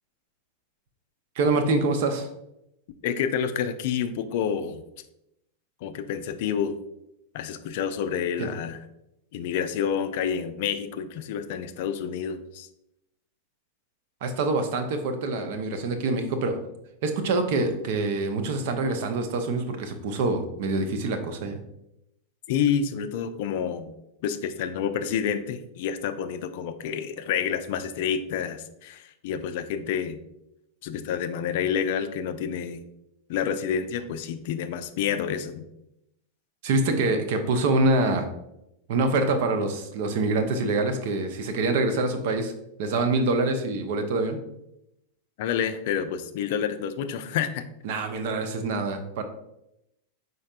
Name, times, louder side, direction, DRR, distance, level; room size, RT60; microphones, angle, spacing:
voice 1, 1.4-2.3 8.4-8.5 14.2-16.6 17.0-21.6 36.6-38.3 38.9-42.5 42.8-44.4 47.8-49.2, right 2 dB, 50° right, 7 dB, 0.6 m, -25 dB
voice 2, 3.0-4.8 5.8-6.8 7.3-8.8 9.3-12.7 22.5-23.9 24.2-30.2 30.8-32.8 33.3-35.6 45.4-47.6, left 8 dB, 50° left, 10 dB, 0.3 m, -28 dB
5.2 x 3.9 x 2.4 m, 0.84 s
figure-of-eight pair, 90°, 0 cm